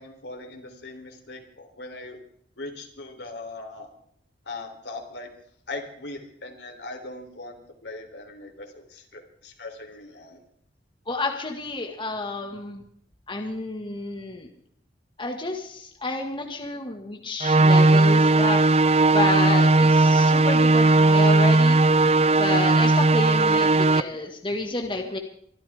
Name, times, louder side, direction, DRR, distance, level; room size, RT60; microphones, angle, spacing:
voice 1, 0.0-2.2 2.6-3.9 4.5-5.3 5.7-7.6 7.8-10.4, left 2 dB, 70° left, 4 dB, 3.5 m, -39 dB
voice 2, 11.1-12.8 13.3-14.5 15.2-25.2, left 2 dB, 30° left, 2 dB, 1.9 m, -30 dB
sound 1, 17.4-24.0, right 2 dB, 35° right, 0.5 m, -17 dB
25.0 x 13.0 x 3.6 m, 0.67 s
head